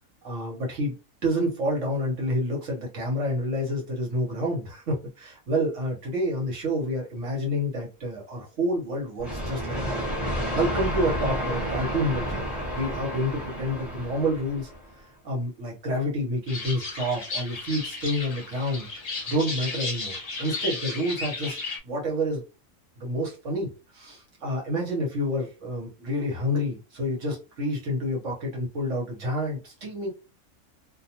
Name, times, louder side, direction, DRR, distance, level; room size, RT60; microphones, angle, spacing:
voice 1, 0.2-0.9 1.2-10.0 10.5-12.4 12.7-14.7 15.2-18.9 19.3-21.6 21.8-22.4 23.0-23.7 23.9-30.1, equal, 70° right, -2 dB, 1.3 m, -28 dB
sound 1, 9.2-14.9, equal, ahead, 1.1 m, -30 dB
sound 2, 16.5-21.8, left 3 dB, 45° left, 0.5 m, -34 dB
2.6 x 2.3 x 2.8 m, 0.30 s
omnidirectional pair, 1.4 m